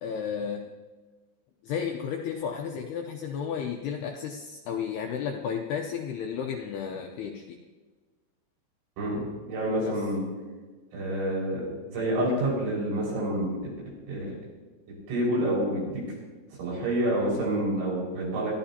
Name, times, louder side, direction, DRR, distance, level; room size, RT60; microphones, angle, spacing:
voice 1, 0.0-0.7 1.6-7.6 9.8-10.0, left 7 dB, 80° left, 2 dB, 2.3 m, -33 dB
voice 2, 9.0-10.3 10.9-13.5 14.1-14.3 15.1-16.0 16.6-18.5, right 1 dB, 70° right, -4 dB, 7.8 m, -28 dB
25.0 x 13.5 x 2.9 m, 1.3 s
omnidirectional pair, 5.7 m